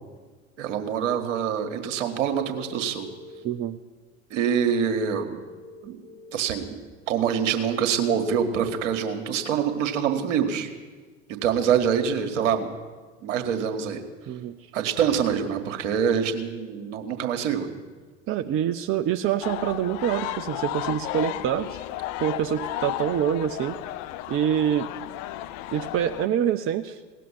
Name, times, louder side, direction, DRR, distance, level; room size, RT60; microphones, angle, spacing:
voice 1, 0.6-3.1 4.3-5.4 5.8-6.0 6.3-6.8 7.1-10.7 11.4-12.7 13.2-14.0 14.7-17.7, right 8 dB, 65° right, 6 dB, 1.7 m, -25 dB
sound 1, 2.4-3.4 5.4-6.4 8.4-8.8, left 3 dB, 65° left, 1.5 m, -46 dB
voice 2, 14.3-14.6 18.3-21.7 22.2-23.8 24.3-24.9 25.7-27.0, right 10 dB, 35° right, 8 dB, 0.7 m, -25 dB
sound 2, 19.4-26.3, left 14 dB, 50° left, 0.7 m, -33 dB
18.0 x 7.6 x 9.9 m, 1.4 s
figure-of-eight pair, 70°, 39 cm